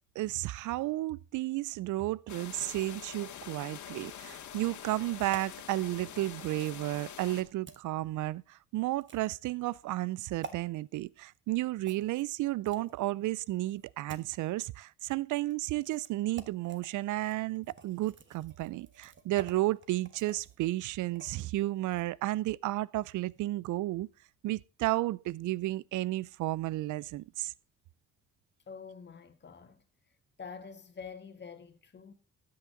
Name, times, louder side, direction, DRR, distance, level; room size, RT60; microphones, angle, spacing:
voice 1, 0.2-24.1 24.4-27.5, right 17 dB, 80° right, 0.5 m, -33 dB
sound 1, 2.3-7.4, left 9 dB, 70° left, 1.8 m, -45 dB
sound 2, 5.3-5.6 6.6-6.8 7.7-7.8 9.0-9.4 10.4-10.6 11.8-13.0 13.7-14.3 15.4-15.5 15.9-16.1 16.4-16.9 17.2-21.5 21.8-22.0, right 5 dB, 40° right, 1.3 m, -49 dB
voice 2, 28.7-29.8 30.4-32.1, left 5 dB, 35° left, 1.8 m, -46 dB
13.0 x 8.6 x 3.7 m
cardioid pair, 90°, 30 cm